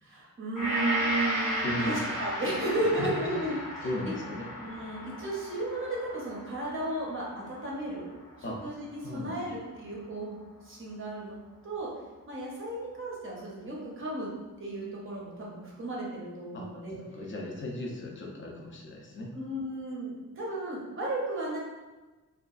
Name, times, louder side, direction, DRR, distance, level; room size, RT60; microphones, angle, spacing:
voice 1, 0.0-4.1 4.6-8.1 8.6-11.4 11.6-11.9 12.3-14.3 14.6-17.0 19.3-21.6, right 1 dB, 40° right, -5 dB, 0.6 m, -34 dB
Gong, 0.6-8.9 9.3-9.4, equal, 65° left, 0.8 m, -35 dB
voice 2, 1.6-2.1 3.0-3.5 3.8-4.5 8.4-8.6 9.0-9.3 16.5-16.7 17.1-19.3, left 1 dB, 35° left, -1 dB, 0.4 m, -36 dB
2.7 x 2.4 x 2.3 m, 1.2 s
wide cardioid pair, 150°, 33 cm